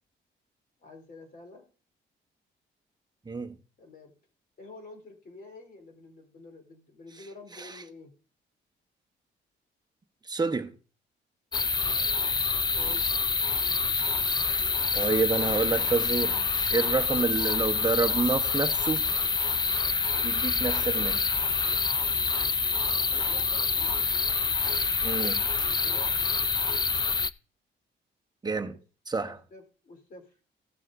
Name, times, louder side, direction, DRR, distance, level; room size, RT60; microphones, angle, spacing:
voice 1, 0.8-1.6 3.8-4.2 4.6-8.1 11.8-12.3 12.7-13.2 22.9-23.9 25.8-26.3 28.7-28.8 29.5-30.4, left 2 dB, 45° left, 3.2 m, -49 dB
voice 2, 10.2-10.7 14.9-16.4 16.7-19.1 20.2-21.3 25.0-25.4 28.4-28.8 29.1-29.4, right 4 dB, 20° right, 1.0 m, -28 dB
sound 1, 11.5-27.3, left 4 dB, 20° left, 0.4 m, -27 dB
16.0 x 7.5 x 2.6 m
cardioid pair, 90°, 20 cm